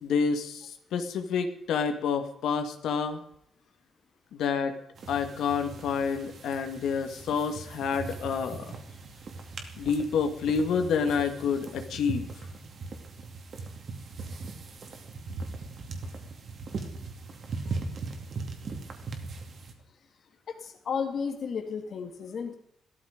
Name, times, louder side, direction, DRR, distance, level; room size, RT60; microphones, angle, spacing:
voice 1, 0.0-3.2 4.3-4.7 5.1-8.6 9.8-12.3, left 6 dB, 75° left, 6 dB, 2.0 m, -28 dB
sound 1, 4.9-19.7, right 4 dB, 45° right, 2.6 m, -39 dB
voice 2, 20.5-22.5, left 6 dB, 45° left, 5 dB, 2.0 m, -33 dB
16.5 x 13.0 x 5.2 m, 0.73 s
cardioid pair, 155°, 0 cm